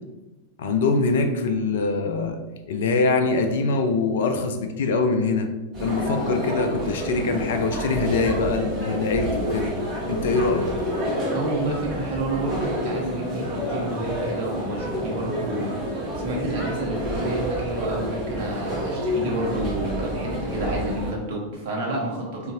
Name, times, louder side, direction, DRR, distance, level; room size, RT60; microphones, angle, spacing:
voice 1, 0.6-2.4 2.7-5.5 5.8-9.7 10.1-10.7, left 3 dB, 60° left, 6 dB, 0.3 m, -23 dB
sound 1, 5.7-21.1, equal, 25° right, 1.0 m, -29 dB
voice 2, 11.3-15.8 16.1-22.5, right 1 dB, 50° right, -3 dB, 0.9 m, -30 dB
3.9 x 2.4 x 2.4 m, 1.1 s
figure-of-eight pair, 90°, 0 cm